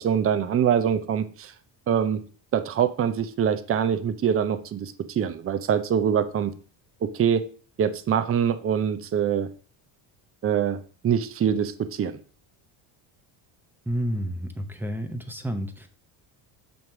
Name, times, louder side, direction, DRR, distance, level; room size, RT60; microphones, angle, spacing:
voice 1, 0.0-1.5 1.9-2.2 2.5-6.5 7.0-7.4 7.8-9.5 10.4-10.8 11.0-12.2, right 8 dB, 30° right, 11 dB, 0.6 m, -24 dB
voice 2, 13.9-15.9, equal, 5° right, 7 dB, 0.9 m, -30 dB
7.3 x 3.2 x 5.9 m, 0.41 s
cardioid pair, 120°, 48 cm